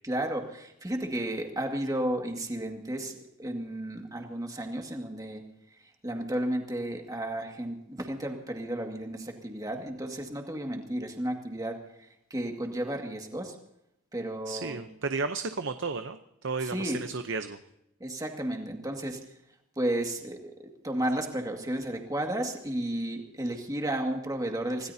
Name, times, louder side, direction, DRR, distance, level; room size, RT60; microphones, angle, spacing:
voice 1, 0.0-5.4 6.0-11.8 12.3-13.6 14.1-14.8 16.6-17.0 18.0-19.2 19.8-24.9, right 1 dB, 15° right, 3 dB, 2.0 m, -33 dB
voice 2, 14.5-17.6, right 4 dB, 55° right, 8 dB, 0.8 m, -33 dB
26.0 x 17.5 x 2.8 m, 0.82 s
head